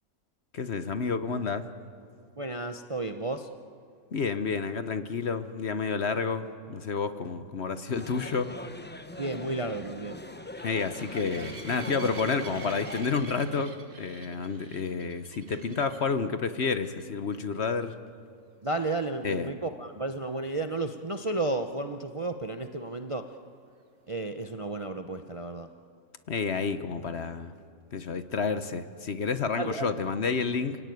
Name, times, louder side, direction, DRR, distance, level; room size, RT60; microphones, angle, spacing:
voice 1, 0.5-1.6 4.1-8.5 10.6-17.9 19.2-19.5 26.3-27.5 27.9-30.8, left 5 dB, 50° left, 10 dB, 1.1 m, -30 dB
voice 2, 2.4-3.5 9.2-10.2 18.6-23.3 24.1-25.7 29.6-29.9, right 2 dB, 30° right, 7 dB, 0.6 m, -32 dB
sound 1, 7.9-13.0, left 1 dB, 10° left, 0.7 m, -41 dB
sound 2, 8.2-16.1 16.7-17.0 17.3-17.4 17.8-17.9 21.5-21.6, right 5 dB, 70° right, 2.3 m, -48 dB
28.0 x 17.5 x 9.4 m, 2.5 s
omnidirectional pair, 1.5 m